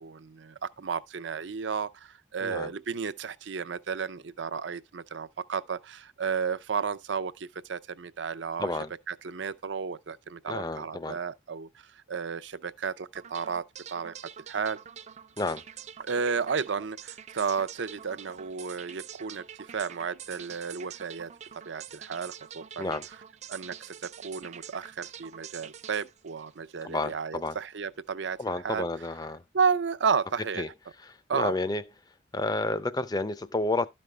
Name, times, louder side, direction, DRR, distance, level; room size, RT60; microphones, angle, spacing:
voice 1, 0.0-8.7 9.1-13.6 13.9-14.1 14.5-14.8 16.0-21.3 21.7-23.0 23.5-28.4 28.6-28.9 29.5-30.6 31.3-31.6, right 5 dB, 80° right, 0.6 m, -32 dB
voice 2, 8.6-8.9 10.5-11.2 15.4-15.6 22.8-23.1 26.8-27.6 28.4-29.4 30.6-30.7 31.3-31.8 32.3-33.9, left 2 dB, 20° left, 0.5 m, -30 dB
sound 1, 13.1-27.2, right 8 dB, 40° right, 0.4 m, -46 dB
12.5 x 5.3 x 3.3 m
head